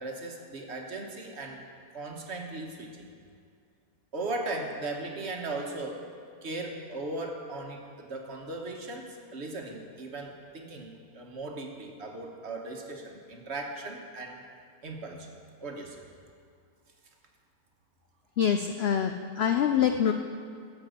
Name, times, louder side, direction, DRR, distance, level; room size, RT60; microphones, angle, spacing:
voice 1, 0.0-1.6 1.9-3.1 4.1-6.1 6.4-14.4 14.8-15.3 15.6-16.0, right 2 dB, 50° right, 2 dB, 1.3 m, -37 dB
voice 2, 18.4-20.1, left 8 dB, 75° left, 6 dB, 0.5 m, -25 dB
13.0 x 5.2 x 7.8 m, 2.3 s
omnidirectional pair, 1.6 m